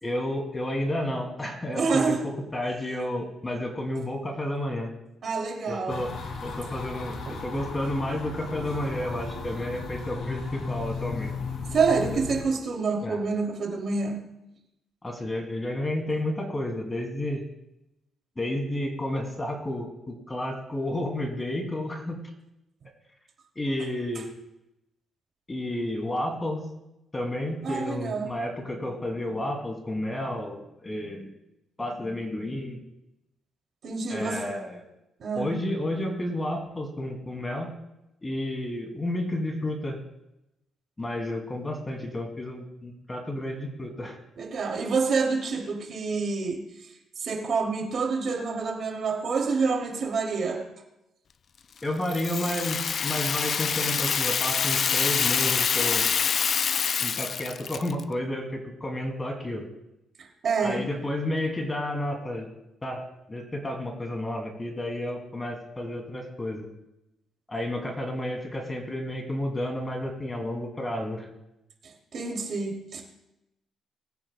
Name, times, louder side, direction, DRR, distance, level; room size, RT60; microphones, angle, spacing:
voice 1, 0.0-4.9 5.7-6.1 6.4-11.3 13.0-13.2 15.0-17.4 18.4-22.2 23.6-24.3 25.5-26.6 27.1-31.3 31.8-32.8 34.1-34.8 35.3-37.7 38.2-40.0 41.0-44.2 51.8-56.1 57.0-59.7 60.6-62.5 62.8-63.0 63.3-66.6 67.5-71.3, left 1 dB, 20° left, 2 dB, 2.5 m, -31 dB
voice 2, 1.7-2.3 5.2-6.1 7.3-7.4 11.7-14.2 27.6-28.3 33.8-34.5 35.2-35.6 44.4-46.6 47.2-50.6 60.2-60.8 71.8-73.0, right 4 dB, 55° right, 1 dB, 2.6 m, -27 dB
sound 1, 5.9-12.4, left 4 dB, 65° left, 2.4 m, -36 dB
Rattle (instrument), 52.1-58.0, left 6 dB, 50° left, 0.3 m, -26 dB
21.5 x 9.0 x 2.2 m, 0.88 s
cardioid pair, 95°, 0 cm